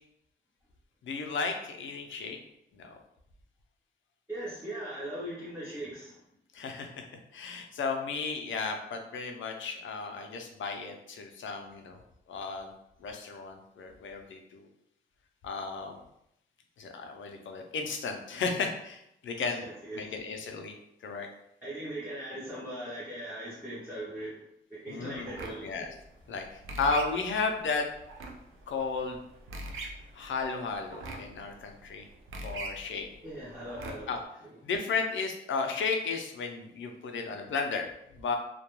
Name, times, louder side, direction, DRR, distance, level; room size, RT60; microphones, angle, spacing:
voice 1, 1.0-2.4 2.7-3.0 6.5-7.0 7.3-12.0 12.3-12.7 13.0-14.7 15.4-16.0 16.8-19.6 20.0-20.7 21.0-21.3 24.9-25.3 25.6-25.9 26.3-27.9 28.7-29.2 30.1-32.1 32.4-33.1 34.1-34.2 34.6-37.9 38.2-38.4, left 4 dB, 75° left, 4 dB, 0.4 m, -34 dB
voice 2, 4.3-6.2 19.4-20.1 21.6-24.4 24.7-25.9 33.2-34.6, right 1 dB, 10° right, -9 dB, 0.6 m, -40 dB
sound 1, 25.3-34.2, right 2 dB, 85° right, 0.4 m, -43 dB
2.2 x 2.2 x 2.9 m, 0.78 s
wide cardioid pair, 155°, 20 cm